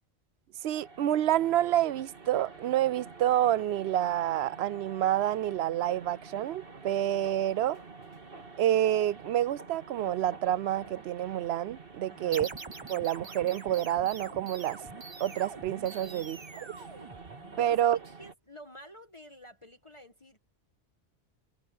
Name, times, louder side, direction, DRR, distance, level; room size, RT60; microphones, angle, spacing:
sound 1, 0.6-18.3, right 4 dB, 50° right, 2.3 m, -48 dB
voice 1, 0.6-7.8 8.6-12.5 12.9-14.8 15.2-16.4 17.6-18.0, right 12 dB, 65° right, 0.8 m, -28 dB
voice 2, 12.1-12.5 16.0-16.3 17.6-20.4, equal, 25° left, 1.4 m, -50 dB
sound 2, 12.3-17.7, right 3 dB, 25° right, 0.9 m, -45 dB
omnidirectional pair, 1.2 m